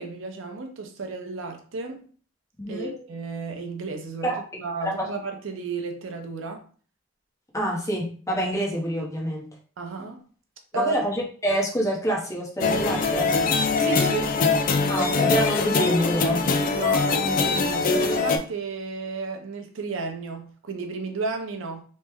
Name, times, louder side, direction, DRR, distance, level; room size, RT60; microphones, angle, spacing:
voice 1, 0.0-2.1 2.7-6.6 9.8-10.2 10.7-11.0 13.8-14.3 16.7-21.8, right 4 dB, 80° right, 0.5 m, -33 dB
voice 2, 2.6-2.9 4.2-4.4 4.8-5.1 7.5-9.4 10.7-13.4 14.9-16.4, equal, 15° left, 0.7 m, -27 dB
sound 1, 12.6-18.4, left 4 dB, 45° left, 0.3 m, -22 dB
3.1 x 2.1 x 3.4 m
head